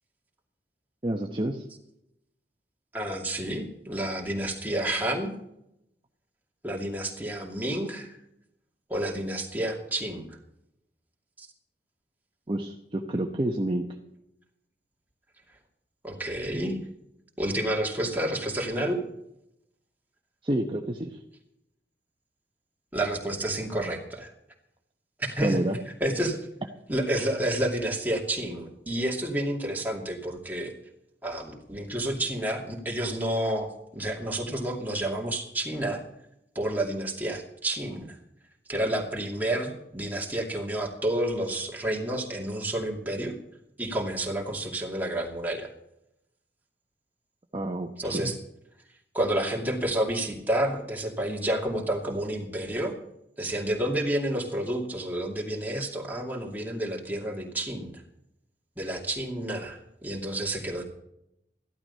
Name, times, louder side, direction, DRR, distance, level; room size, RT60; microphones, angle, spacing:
voice 1, 1.0-1.6 12.5-13.9 20.4-21.2 25.4-25.8 47.5-48.3, right 1 dB, 30° right, 2 dB, 0.9 m, -29 dB
voice 2, 2.9-5.3 6.6-8.2 8.9-10.4 11.4-11.5 16.0-16.8 17.4-19.0 22.9-24.3 25.2-25.6 26.0-26.4 26.9-30.7 31.2-36.0 36.5-38.2 38.7-43.4 43.8-45.7 48.0-48.4 49.1-52.9 53.4-58.0 58.8-60.9, right 1 dB, 10° right, -1 dB, 2.5 m, -30 dB
14.5 x 12.0 x 5.5 m, 0.82 s
head